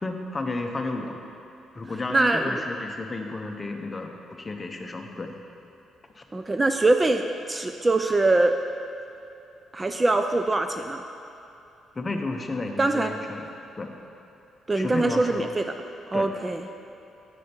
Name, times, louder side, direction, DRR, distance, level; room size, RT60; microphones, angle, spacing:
voice 1, 0.0-1.2 1.7-5.3 6.2-6.3 11.9-13.5 13.8-13.9 14.7-15.5 16.1-16.3, left 2 dB, 25° left, 3 dB, 0.7 m, -32 dB
voice 2, 2.1-2.6 6.3-8.5 9.7-11.0 12.8-13.1 14.7-15.7 16.1-16.6, right 2 dB, 20° right, 6 dB, 0.3 m, -23 dB
7.9 x 6.3 x 4.4 m, 2.8 s
cardioid pair, 90°, 0 cm